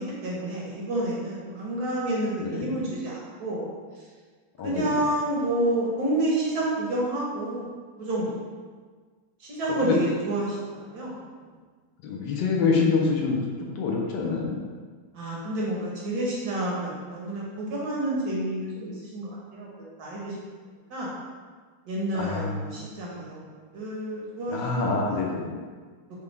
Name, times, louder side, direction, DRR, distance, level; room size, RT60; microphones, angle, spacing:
voice 1, 0.0-3.7 4.6-7.7 8.0-8.4 9.4-11.2 15.1-19.7 20.0-20.3 20.9-21.1 21.9-23.4 23.7-25.2, right 1 dB, 65° right, -5 dB, 1.2 m, -29 dB
voice 2, 2.4-2.7 4.6-5.1 9.8-10.0 12.0-13.4 13.8-14.6 22.1-22.9 24.5-25.6, left 4 dB, 75° left, -1 dB, 1.2 m, -26 dB
4.9 x 2.2 x 3.2 m, 1.5 s
omnidirectional pair, 2.0 m